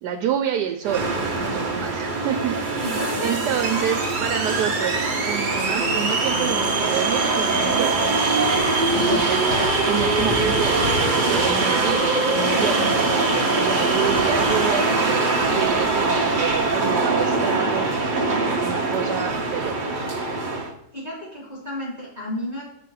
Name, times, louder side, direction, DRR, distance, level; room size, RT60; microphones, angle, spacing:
voice 1, 0.0-2.9 3.2-5.0 5.2-8.1 8.9-9.5 9.9-17.9 18.6-20.1, right 9 dB, 75° right, 5 dB, 1.2 m, -28 dB
sound 1, 0.8-20.7, right 3 dB, 45° right, 0.6 m, -22 dB
voice 2, 2.8-3.5 8.9-9.3 20.9-22.6, left 1 dB, 20° left, -7 dB, 3.1 m, -32 dB
sound 2, 8.6-12.1, left 3 dB, 45° left, 1.1 m, -32 dB
6.9 x 3.5 x 6.2 m, 0.77 s
omnidirectional pair, 1.9 m